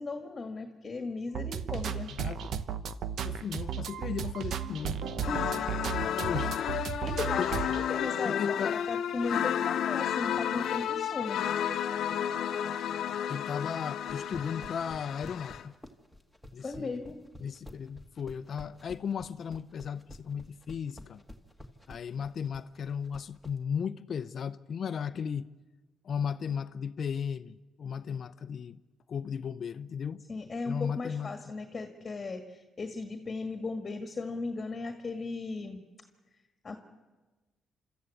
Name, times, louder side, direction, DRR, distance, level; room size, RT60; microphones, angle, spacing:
voice 1, 0.0-2.1 5.3-5.7 6.9-11.4 16.6-17.2 30.3-35.8 36.6-36.8, left 3 dB, 35° left, 1.7 m, -37 dB
sound 1, 1.3-7.8, right 8 dB, 65° right, 0.9 m, -34 dB
voice 2, 2.1-2.5 3.2-5.0 6.2-6.6 7.0-7.1 7.4-7.5 8.2-8.8 13.3-15.7 16.5-17.0 17.4-21.2 21.9-25.5 26.0-28.8 29.1-30.2 30.6-31.3, left 7 dB, 55° left, 0.6 m, -35 dB
sound 2, 5.2-15.6, left 9 dB, 70° left, 0.9 m, -32 dB
sound 3, 14.0-23.6, left 1 dB, 5° right, 1.8 m, -49 dB
26.5 x 13.5 x 8.3 m
cardioid pair, 90°, 0 cm